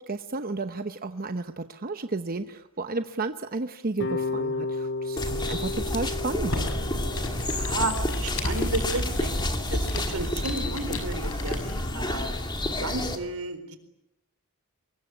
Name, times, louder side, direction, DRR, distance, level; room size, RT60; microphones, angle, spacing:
voice 1, 0.0-6.6, right 3 dB, 40° right, 8 dB, 0.9 m, -32 dB
sound 1, 4.0-9.1, left 3 dB, 50° left, 2.3 m, -34 dB
sound 2, 5.2-13.2, left 1 dB, 20° left, 2.4 m, -30 dB
Computer keyboard, 6.2-12.0, left 1 dB, 65° left, 5.8 m, -34 dB
voice 2, 7.4-9.3 9.7-11.6 11.9-12.4 12.8-13.8, right 3 dB, 85° right, 9 dB, 4.2 m, -32 dB
24.5 x 22.0 x 9.7 m, 0.88 s
head